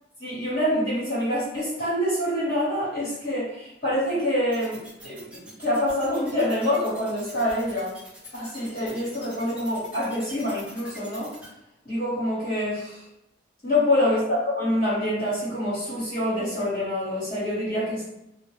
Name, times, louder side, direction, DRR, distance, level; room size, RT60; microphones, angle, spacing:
voice 1, 0.2-7.9 8.3-11.3 11.8-13.0 13.6-18.0, left 1 dB, 50° left, -11 dB, 1.1 m, -26 dB
sound 1, 4.5-11.5, right 1 dB, 5° right, 0.6 m, -45 dB
2.1 x 2.0 x 3.0 m, 0.86 s
head